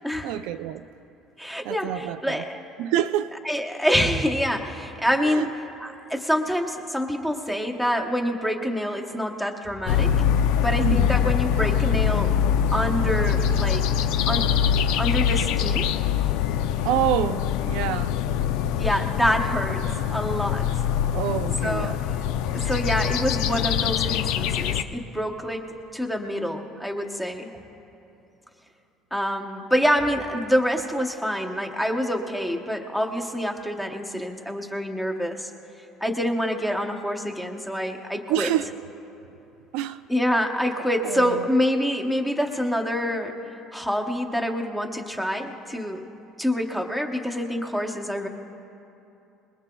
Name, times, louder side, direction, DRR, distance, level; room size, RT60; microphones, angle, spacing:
voice 1, 0.2-0.9 1.6-2.4 2.8-3.4 5.2-5.5 10.8-11.2 16.8-18.1 21.1-22.0 38.3-38.7 39.7-40.0 41.0-41.5, right 12 dB, 85° right, 0.4 m, -27 dB
voice 2, 1.4-2.6 3.5-5.5 5.8-10.2 10.6-12.3 12.7-13.9 14.3-14.5 15.0-15.9 18.8-20.7 21.6-22.0 22.5-27.5 29.1-35.5 36.0-38.5 40.1-43.3 43.7-46.0 46.4-48.3, equal, 5° left, 0.9 m, -26 dB
sound 1, 9.9-24.8, left 8 dB, 85° left, 0.5 m, -23 dB
24.0 x 21.5 x 2.3 m
cardioid pair, 170°, 0 cm